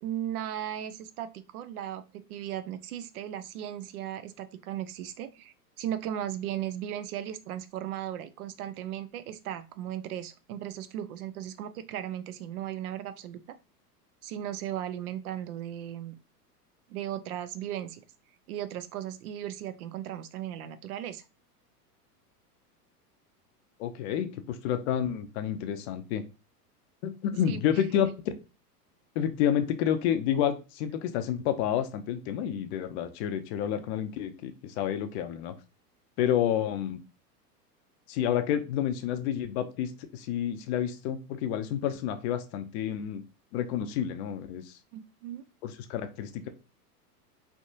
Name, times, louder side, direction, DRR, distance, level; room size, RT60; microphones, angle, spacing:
voice 1, 0.0-13.4 14.2-16.2 16.9-18.0 18.5-21.2 27.5-27.6 44.9-45.4, right 11 dB, 65° right, 12 dB, 0.5 m, -36 dB
voice 2, 23.8-26.2 27.0-28.1 29.2-35.5 36.2-37.0 38.1-43.2 43.5-44.8 45.6-46.5, left 9 dB, 45° left, 10 dB, 0.5 m, -29 dB
3.4 x 2.7 x 2.6 m, 0.30 s
hypercardioid pair, 95°, 48 cm